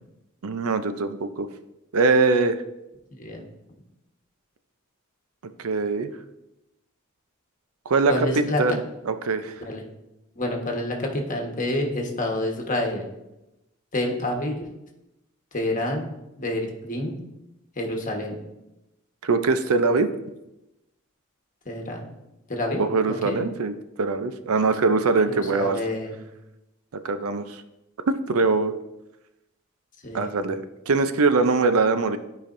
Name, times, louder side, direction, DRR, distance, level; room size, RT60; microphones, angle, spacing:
voice 1, 0.4-1.5 1.9-2.6 5.6-6.1 7.9-8.8 9.1-9.6 19.2-20.1 22.8-25.8 26.9-27.6 28.1-28.7 30.1-32.2, right 4 dB, 80° right, 10 dB, 0.5 m, -22 dB
voice 2, 3.1-3.4 8.1-8.8 9.6-9.8 10.3-13.0 13.9-14.7 15.5-16.0 16.4-17.2 17.8-18.4 21.6-22.0 22.5-23.4 25.3-26.2 30.0-30.4, left 1 dB, 40° left, 1 dB, 1.3 m, -28 dB
13.0 x 5.1 x 2.6 m, 0.93 s
head